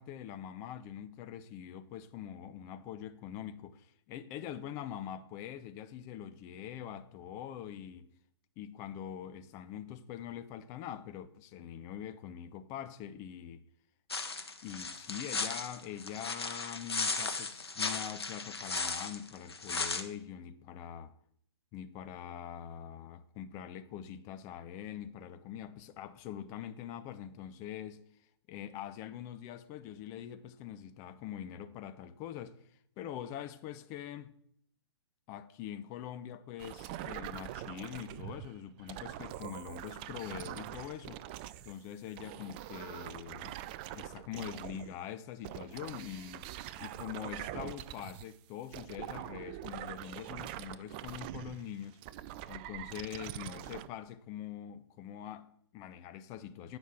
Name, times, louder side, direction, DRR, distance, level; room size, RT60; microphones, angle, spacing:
voice 1, 0.0-8.1 8.6-13.6 14.6-21.1 21.7-28.0 28.5-32.6 33.0-34.3 35.3-41.2 41.6-43.6 43.9-52.0 52.5-56.8, left 10 dB, 20° left, 0.6 m, -44 dB
sound 1, 14.1-20.0, left 4 dB, 65° left, 1.4 m, -36 dB
sound 2, 36.6-41.8 42.1-45.0 45.4-48.3 48.7-53.9, right 13 dB, 20° right, 0.3 m, -44 dB
9.2 x 6.1 x 8.4 m
figure-of-eight pair, 120°, 14 cm